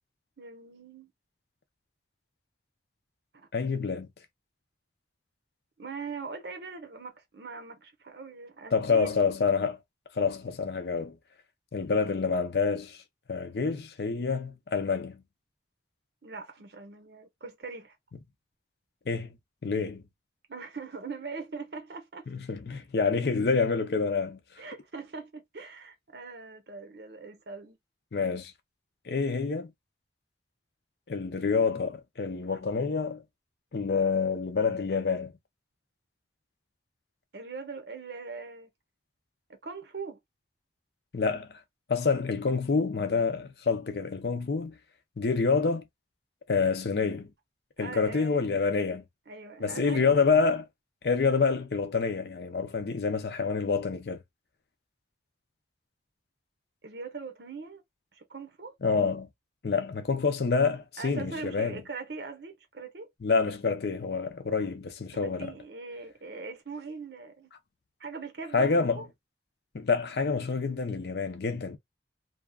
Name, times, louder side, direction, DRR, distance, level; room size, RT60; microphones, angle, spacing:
voice 1, 0.4-1.1 3.3-3.5 5.8-9.1 16.2-18.0 20.5-22.3 24.6-27.8 37.3-38.7 39.5-40.2 47.8-48.5 49.3-50.1 56.8-57.8 58.1-58.7 61.0-63.1 65.1-67.5 68.0-69.1, right 4 dB, 65° right, 0.8 m, -41 dB
voice 2, 3.5-4.1 8.7-9.8 10.1-11.2 11.7-13.0 13.3-15.2 19.1-19.3 19.6-20.0 22.3-24.4 28.1-28.5 29.1-29.7 31.1-33.2 33.7-35.3 41.1-41.6 41.9-44.7 45.2-45.8 46.5-47.3 47.8-49.0 49.6-50.7 51.0-54.2 58.8-59.3 59.6-61.8 63.2-65.5 68.5-69.0 69.7-71.8, left 4 dB, 60° left, 0.5 m, -27 dB
2.8 x 2.3 x 2.3 m
head